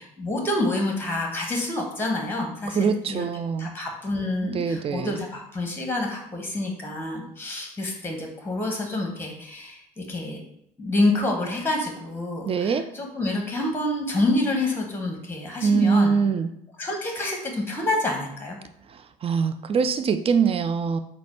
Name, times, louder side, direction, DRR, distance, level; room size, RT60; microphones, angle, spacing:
voice 1, 0.0-3.3 3.6-10.4 10.8-16.2 16.8-18.6, left 2 dB, 10° left, 1 dB, 1.0 m, -27 dB
voice 2, 2.7-3.7 4.4-5.2 12.4-12.8 15.6-16.5 19.2-21.0, right 5 dB, 30° right, 10 dB, 0.4 m, -23 dB
4.1 x 2.3 x 4.2 m, 0.73 s
figure-of-eight pair, 50°, 21 cm